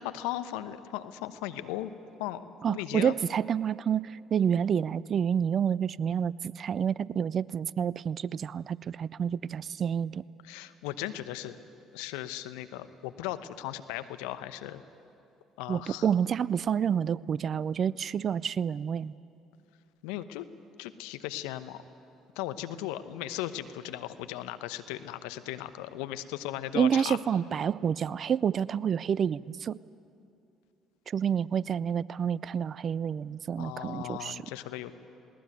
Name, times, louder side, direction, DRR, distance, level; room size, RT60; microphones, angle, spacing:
voice 1, 0.0-1.9 2.2-3.1 10.4-11.6 11.9-14.8 15.6-16.1 20.0-20.5 20.8-21.8 22.4-27.2 33.6-34.9, left 13 dB, 75° left, 11 dB, 0.9 m, -37 dB
voice 2, 2.6-10.2 15.7-19.1 26.7-29.8 31.1-34.4, right 8 dB, 50° right, 21 dB, 0.4 m, -29 dB
20.5 x 18.0 x 9.3 m, 2.7 s
hypercardioid pair, 55°, 0 cm